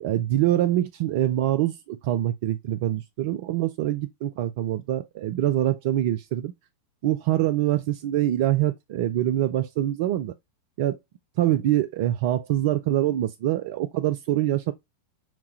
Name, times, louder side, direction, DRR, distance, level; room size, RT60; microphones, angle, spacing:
voice 1, 0.0-6.5 7.0-10.3 10.8-11.0 11.4-14.7, right 13 dB, 50° right, 0.4 m, -24 dB
5.8 x 2.3 x 2.7 m
figure-of-eight pair, 90°, 0 cm